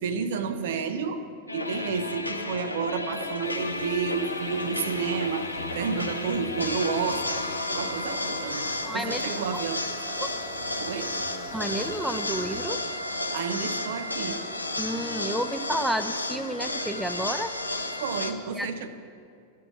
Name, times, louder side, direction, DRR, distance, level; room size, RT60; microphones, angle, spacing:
voice 1, 0.0-1.3 1.5-5.5 5.8-8.7 8.9-10.2 10.8-11.2 13.3-14.4 18.0-18.9, right 5 dB, 55° right, 10 dB, 0.6 m, -30 dB
sound 1, 1.5-18.3, left 1 dB, 85° left, 0.6 m, -32 dB
sound 2, 3.4-12.6, left 3 dB, 45° left, 1.1 m, -44 dB
voice 2, 8.8-9.2 10.2-10.3 11.5-12.8 14.8-17.5 18.6-18.7, right 1 dB, ahead, 10 dB, 0.4 m, -30 dB
13.0 x 4.6 x 7.1 m, 2.3 s
figure-of-eight pair, 90°, 0 cm